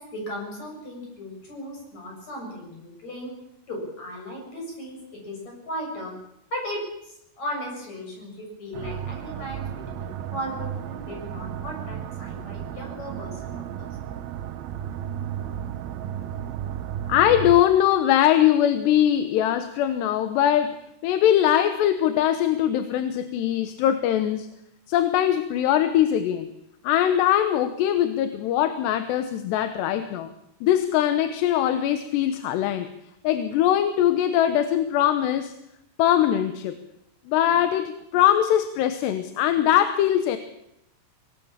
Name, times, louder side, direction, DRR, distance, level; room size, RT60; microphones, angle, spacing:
voice 1, 0.0-3.3 3.7-5.0 5.2-6.1 6.5-6.8 7.4-13.9, equal, 40° left, 0 dB, 8.4 m, -36 dB
sound 1, 8.7-17.6, right 10 dB, 70° right, 2.7 m, -34 dB
voice 2, 17.1-24.5 24.9-26.5 26.8-30.3 30.6-32.9 33.2-35.5 36.0-36.8 37.3-40.4, left 11 dB, 80° left, 9 dB, 3.2 m, -21 dB
24.0 x 19.0 x 7.3 m, 0.80 s
omnidirectional pair, 4.8 m